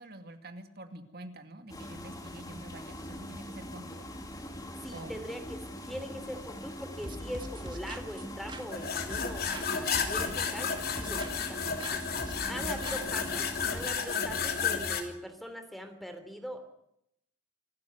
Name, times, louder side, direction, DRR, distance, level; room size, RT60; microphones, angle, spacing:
voice 1, 0.0-4.1 4.9-5.3 12.6-13.5, right 1 dB, 55° right, 7 dB, 2.4 m, -47 dB
sound 1, 1.7-13.8, left 1 dB, 20° left, 2.7 m, -43 dB
voice 2, 4.8-12.0 12.5-16.6, equal, ahead, 8 dB, 3.1 m, -42 dB
sound 2, 7.0-9.7 9.9-11.5 11.8-13.4, right 1 dB, 25° right, 1.8 m, -43 dB
sound 3, 8.7-15.0, left 6 dB, 50° left, 3.0 m, -32 dB
26.5 x 13.0 x 9.5 m, 0.77 s
head